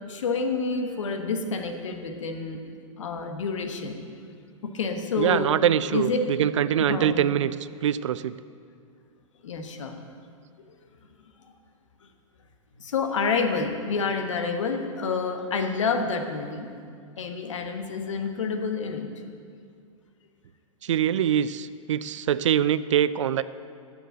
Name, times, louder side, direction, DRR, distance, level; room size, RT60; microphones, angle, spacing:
voice 1, 0.1-2.6 3.0-4.3 4.6-5.5 5.9-6.2 6.7-7.2 9.4-10.0 12.8-16.7 17.2-19.1, left 4 dB, 65° left, 5 dB, 1.1 m, -28 dB
voice 2, 5.2-7.5 7.8-8.4 20.8-23.4, right 10 dB, 65° right, 16 dB, 0.4 m, -23 dB
8.9 x 7.0 x 7.7 m, 2.3 s
figure-of-eight pair, 100°, 17 cm